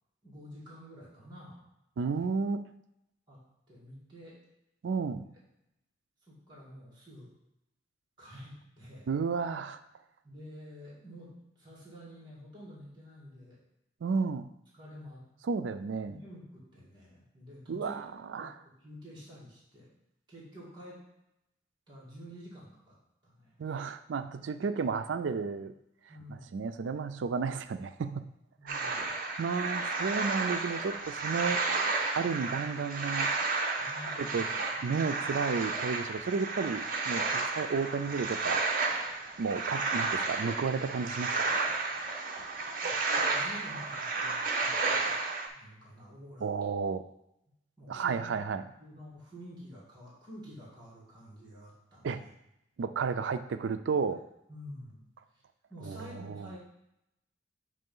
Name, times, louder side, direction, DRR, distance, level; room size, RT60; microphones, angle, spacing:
voice 1, 0.2-1.6 2.2-2.3 3.3-3.4 3.7-4.4 5.1-5.2 6.3-7.3 8.2-9.1 10.2-13.6 14.7-15.2 16.1-18.0 18.4-19.9 20.3-21.0 21.9-23.0 23.2-23.8 26.1-26.6 28.6-29.1 33.8-34.5 34.8-35.1 43.2-45.2 45.5-46.5 47.8-48.3 48.8-52.3 54.5-55.0 55.7-56.6, equal, 25° right, -5 dB, 2.0 m, -49 dB
voice 2, 2.0-2.6 4.8-5.3 9.1-9.8 14.0-14.5 15.4-16.2 17.7-18.6 23.6-25.7 26.3-28.3 28.6-28.9 29.4-31.6 32.1-33.4 34.2-34.5 34.8-38.7 39.4-41.5 46.4-47.0 47.9-48.6 52.0-52.3 52.8-54.2 55.8-56.5, right 5 dB, 80° right, 11 dB, 0.4 m, -32 dB
sound 1, 28.7-45.5, right 3 dB, 50° right, 0.7 m, -32 dB
6.8 x 3.2 x 5.4 m, 0.84 s
head